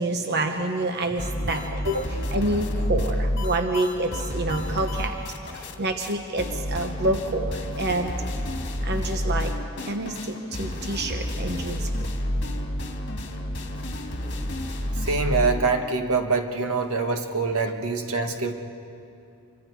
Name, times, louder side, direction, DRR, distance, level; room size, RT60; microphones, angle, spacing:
voice 1, 0.0-1.8 2.2-5.1 5.5-8.5 8.8-9.5 9.8-11.9, right 2 dB, 50° right, 5 dB, 1.1 m, -28 dB
sound 1, 1.2-5.7 6.0-6.1 6.4-15.6, left 1 dB, 55° left, 2.0 m, -29 dB
voice 2, 15.0-18.6, right 3 dB, 75° right, 5 dB, 1.5 m, -25 dB
27.5 x 24.5 x 4.7 m, 2.6 s
head